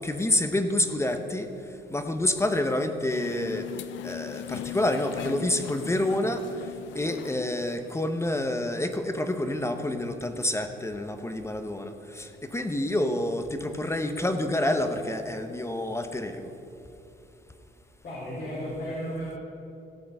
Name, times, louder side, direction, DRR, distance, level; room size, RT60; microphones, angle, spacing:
voice 1, 0.0-1.5 1.9-3.7 4.0-6.4 6.9-16.5, left 1 dB, 15° left, 7 dB, 0.8 m, -28 dB
sound 1, 3.1-8.3, left 14 dB, 75° left, 0.4 m, -40 dB
voice 2, 18.0-19.4, equal, 55° left, -6 dB, 3.3 m, -34 dB
15.5 x 5.7 x 6.6 m, 2.7 s
cardioid pair, 90°, 20 cm